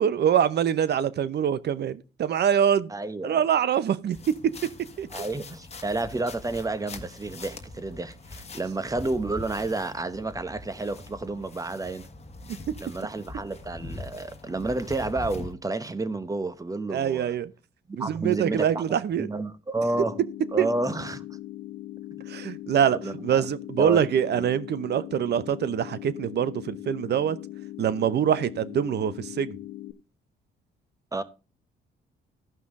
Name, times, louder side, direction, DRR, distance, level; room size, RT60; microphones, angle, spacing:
voice 1, 0.0-2.9 3.2-4.2 5.0-5.3 12.5-12.6 16.9-17.5 18.0-19.3 20.6-20.7 22.3-27.4 27.8-29.6, right 9 dB, 55° right, 0.8 m, -24 dB
voice 2, 2.9-3.5 5.1-12.1 12.8-17.3 17.9-18.8 19.2-20.2 20.5-21.2 22.9-23.5 23.8-24.0 24.3-24.5 31.1-31.2, right 2 dB, 15° right, 1.0 m, -30 dB
sound 1, 4.1-15.5, left 2 dB, 30° left, 1.4 m, -42 dB
sound 2, 19.9-29.9, left 14 dB, 90° left, 1.0 m, -40 dB
15.0 x 5.6 x 3.7 m
cardioid pair, 90°, 20 cm